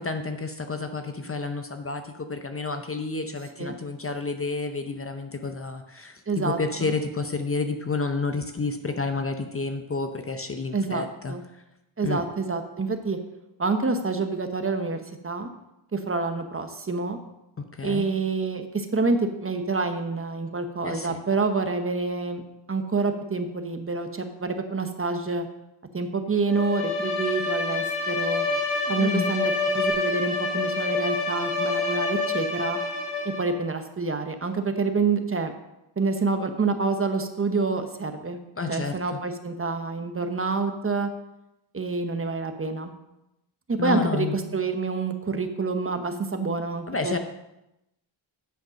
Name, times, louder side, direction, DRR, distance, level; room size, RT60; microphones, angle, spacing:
voice 1, 0.0-11.6 12.0-12.2 17.6-18.1 20.8-21.2 28.9-29.3 38.6-39.2 43.8-44.6 46.9-47.2, left 3 dB, 30° left, 7 dB, 0.7 m, -30 dB
voice 2, 6.3-6.9 10.7-11.4 12.0-13.2 13.6-15.5 15.9-17.2 17.8-22.4 22.7-25.5 25.9-28.4 28.9-32.8 33.4-35.5 36.0-38.4 38.7-41.1 41.7-42.9 43.7-47.2, right 4 dB, 25° right, 7 dB, 0.9 m, -27 dB
Bowed string instrument, 26.5-33.6, left 3 dB, 65° left, 2.8 m, -27 dB
9.2 x 5.1 x 6.3 m, 0.90 s
wide cardioid pair, 110°, 48 cm